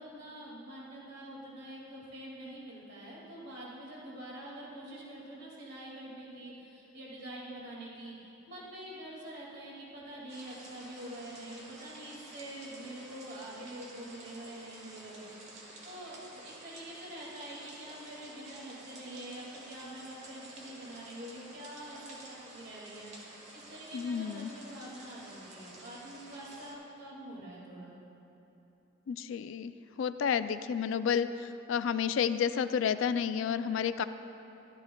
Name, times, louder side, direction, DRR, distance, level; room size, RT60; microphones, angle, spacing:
voice 1, 0.0-8.1 8.5-23.2 23.5-28.0, right 1 dB, 55° right, -5 dB, 2.1 m, -46 dB
sound 1, 10.3-26.7, right 1 dB, 35° right, 1.3 m, -51 dB
voice 2, 23.9-24.5 29.1-29.7 30.0-34.0, left 7 dB, 70° left, 12 dB, 0.3 m, -30 dB
13.5 x 12.5 x 2.3 m, 2.9 s
head